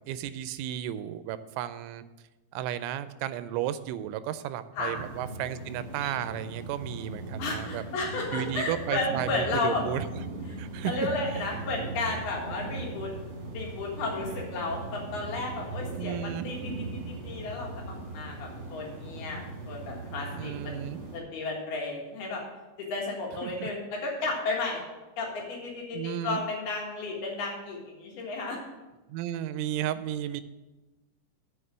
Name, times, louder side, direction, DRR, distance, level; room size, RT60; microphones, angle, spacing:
voice 1, 0.0-2.0 2.5-7.8 8.3-10.1 10.6-10.9 11.3-11.4 15.9-16.5 20.3-21.0 23.4-23.7 24.2-24.4 25.9-26.4 29.1-30.4, right 11 dB, 85° right, 13 dB, 3.0 m, -33 dB
sound 1, 4.9-21.2, right 2 dB, 50° right, 2.0 m, -39 dB
voice 2, 7.4-9.8 10.5-10.6 10.8-13.1 13.5-22.4 22.8-24.8 25.2-28.6, left 3 dB, 65° left, -2 dB, 3.2 m, -33 dB
7.9 x 5.6 x 7.5 m, 1.1 s
omnidirectional pair, 5.5 m